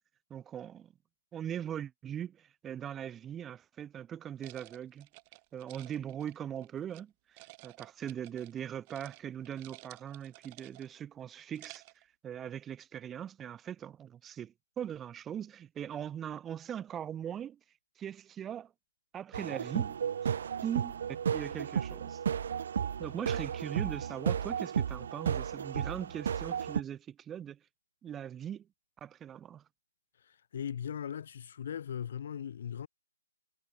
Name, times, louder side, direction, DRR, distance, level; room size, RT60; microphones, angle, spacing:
voice 1, 0.3-0.9 1.3-5.1 5.5-7.1 7.6-11.8 12.2-17.6 18.0-18.7 19.1-20.0 20.2-20.3 20.6-20.9 21.3-22.2 23.0-27.6 28.0-28.7 29.0-29.6, right 9 dB, 15° right, 2.4 m, -40 dB
sound 1, 4.4-7.0 7.4-8.6 8.9-9.2 9.4-11.0 11.4-12.0, right 27 dB, 30° right, 2.0 m, -54 dB
sound 2, 19.3-26.8, right 8 dB, 55° right, 2.1 m, -33 dB
voice 2, 30.2-32.9, left 8 dB, 50° left, 2.2 m, -39 dB
figure-of-eight pair, 145°, 0 cm